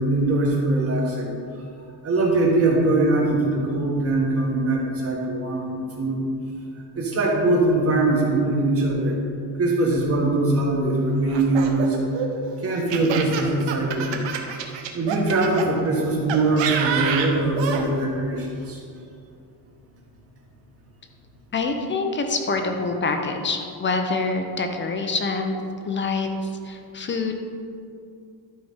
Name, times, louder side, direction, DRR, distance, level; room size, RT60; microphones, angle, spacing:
voice 1, 0.0-1.4 2.0-5.6 6.0-6.2 6.9-9.2 9.6-12.0 12.6-14.2 14.9-18.8, right 2 dB, 30° right, -1 dB, 1.6 m, -22 dB
Laughter, 11.3-15.7 16.3-17.8, right 7 dB, 85° right, 1.1 m, -27 dB
voice 2, 21.5-25.6 25.8-27.3, left 3 dB, 25° left, 5 dB, 0.6 m, -26 dB
12.0 x 4.9 x 5.6 m, 2.4 s
cardioid pair, 175°, 43 cm